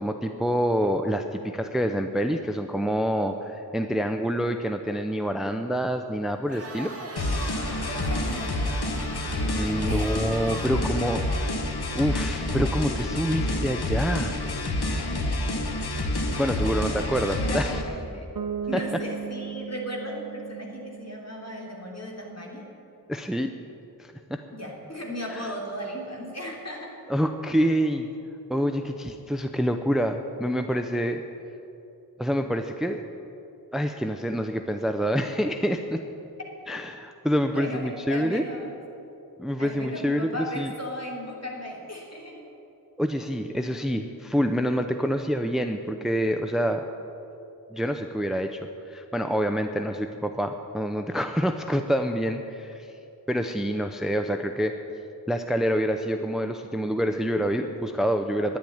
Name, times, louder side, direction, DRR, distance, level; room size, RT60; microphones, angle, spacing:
voice 1, 0.0-6.9 9.6-11.2 11.9-14.4 16.4-17.8 18.7-18.8 23.1-23.5 24.0-24.4 25.3-25.5 27.1-28.1 28.5-31.2 32.2-33.0 33.7-36.0 36.7-38.4 39.4-40.7 43.0-46.8 47.7-48.6 48.9-52.9 53.3-54.8 55.3-58.6, equal, ahead, 6 dB, 0.7 m, -27 dB
Crowd, 6.4-12.6, right 2 dB, 35° right, 2.1 m, -40 dB
sound 1, 7.2-17.8, left 1 dB, 75° left, 1.3 m, -28 dB
voice 2, 7.8-8.6 9.9-10.2 16.3-18.3 18.7-22.6 24.5-27.1 37.5-38.8 39.6-42.4, equal, 40° left, -1 dB, 3.1 m, -36 dB
Bass guitar, 18.4-22.2, right 7 dB, 55° right, 0.9 m, -37 dB
10.5 x 10.0 x 9.3 m, 2.9 s
wide cardioid pair, 40°, 38 cm